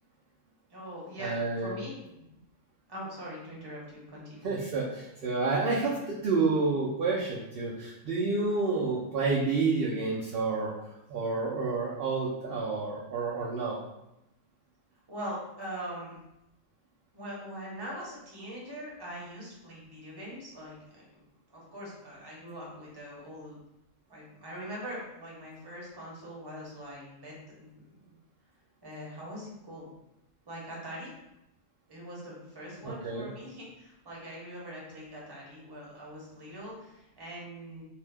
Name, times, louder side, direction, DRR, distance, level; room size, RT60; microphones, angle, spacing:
voice 1, 0.7-2.3 2.9-4.5 15.1-16.2 17.1-21.0 21.5-23.5 24.1-28.2 28.8-29.9 30.5-31.1 31.9-37.8, equal, 25° right, -5 dB, 0.7 m, -42 dB
voice 2, 1.2-1.8 4.4-10.7 11.1-13.8 32.8-33.3, right 3 dB, 65° right, -4 dB, 0.6 m, -29 dB
2.7 x 2.1 x 3.3 m, 0.89 s
omnidirectional pair, 1.4 m